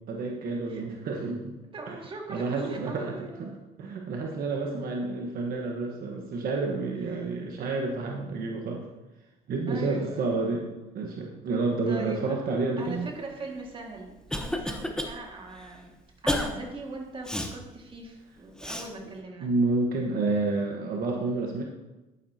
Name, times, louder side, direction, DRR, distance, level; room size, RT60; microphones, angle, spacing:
voice 1, 0.1-1.5 1.9-2.0 2.3-8.8 9.5-10.7 10.9-13.1 19.4-21.6, right 3 dB, 60° right, 1 dB, 1.2 m, -29 dB
voice 2, 1.6-3.5 4.2-4.3 7.1-7.2 9.7-10.3 11.5-11.6 11.9-12.4 12.8-15.9 16.2-19.5, right 2 dB, 30° right, 0 dB, 2.0 m, -40 dB
Cough, 13.7-15.1 15.5-15.7 16.3-16.5 17.3-17.5 18.6-18.9, left 1 dB, 5° left, 1.0 m, -30 dB
11.0 x 9.6 x 2.8 m, 1.1 s
cardioid pair, 110°, 17 cm